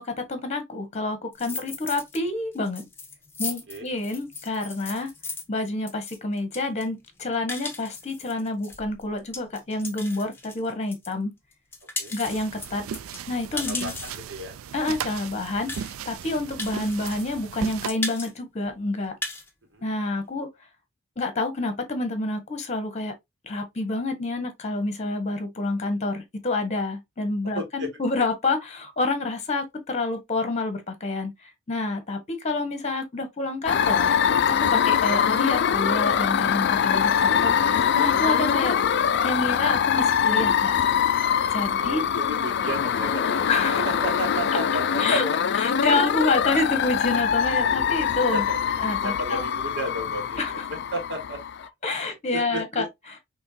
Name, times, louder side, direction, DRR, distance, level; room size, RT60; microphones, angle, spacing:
voice 1, 0.0-2.8 3.4-5.1 5.5-11.3 12.1-12.8 13.3-13.9 14.7-19.1 19.8-20.5 21.2-23.1 23.4-31.3 31.7-34.1 34.5-38.8 39.2-40.8 41.5-42.0 43.5-44.0 44.5-44.6 45.0-48.5 48.8-49.4 50.4-50.6 51.8-53.2, left 2 dB, 35° left, 1.2 m, -28 dB
sound 1, 1.3-2.2 2.5-11.1 11.5-14.3 14.9-15.0 15.2-15.3 15.7-16.2 16.6-17.4 17.6-18.3 18.6-18.7 19.0-19.5, left 3 dB, 10° left, 1.2 m, -36 dB
sound 2, 12.2-17.9, right 8 dB, 85° right, 0.4 m, -37 dB
voice 2, 13.5-13.9 14.3-14.5 19.7-19.8 27.5-27.9 41.7-43.5 43.9-45.2 45.8-46.0 48.3-48.6 49.0-50.6 50.9-51.4 51.9-52.8, right 1 dB, 60° right, 1.8 m, -33 dB
sound 3, 33.7-51.6, left 8 dB, 55° left, 0.4 m, -23 dB
5.6 x 3.0 x 2.7 m
head